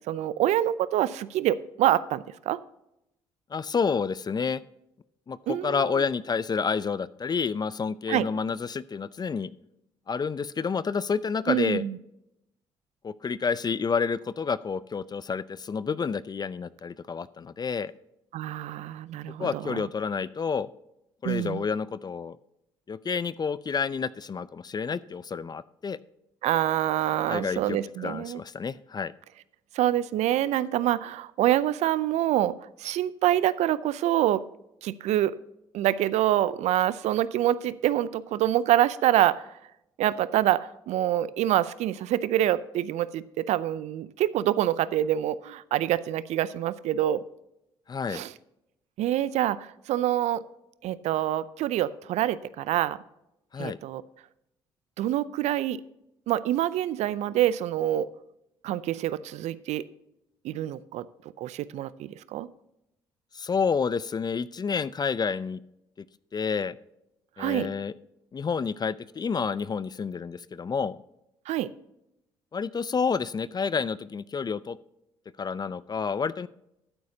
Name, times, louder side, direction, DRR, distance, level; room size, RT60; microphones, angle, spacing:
voice 1, 0.1-2.6 5.5-6.0 8.1-8.3 11.5-12.0 18.3-19.9 21.2-21.6 26.4-28.4 29.7-34.4 34.8-35.4 35.7-39.4 40.0-47.2 48.1-48.3 49.0-50.4 50.8-53.0 53.6-54.0 55.0-55.8 56.3-58.1 58.6-59.9 60.4-61.1 61.4-62.5 67.4-67.7 71.5-71.7, right 12 dB, 70° right, 18 dB, 0.5 m, -26 dB
voice 2, 3.5-4.6 5.3-9.5 10.1-11.8 13.0-17.9 19.4-20.7 21.2-22.4 22.9-26.0 27.3-29.1 47.9-48.2 53.5-53.8 63.3-65.6 66.3-66.7 67.4-67.9 68.3-71.0 72.5-74.8 75.4-76.5, left 5 dB, 35° left, 18 dB, 0.5 m, -29 dB
12.5 x 9.4 x 2.8 m, 0.84 s
hypercardioid pair, 50°, 12 cm